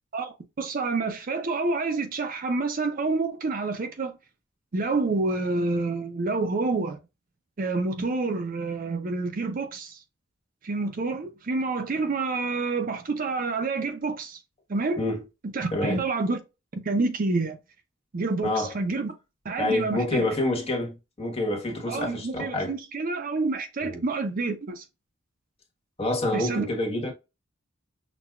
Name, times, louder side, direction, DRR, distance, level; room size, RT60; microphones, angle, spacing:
voice 1, 0.1-4.1 4.7-7.0 7.6-10.0 10.6-14.4 14.7-15.0 15.4-16.4 16.7-17.6 18.1-19.1 19.4-20.3 21.9-24.8 26.3-26.6, right 3 dB, 45° right, 0.5 m, -28 dB
voice 2, 15.7-16.0 18.4-18.7 19.6-22.7 23.8-24.0 26.0-27.1, left 1 dB, 30° left, 1.3 m, -27 dB
6.0 x 2.3 x 2.3 m
head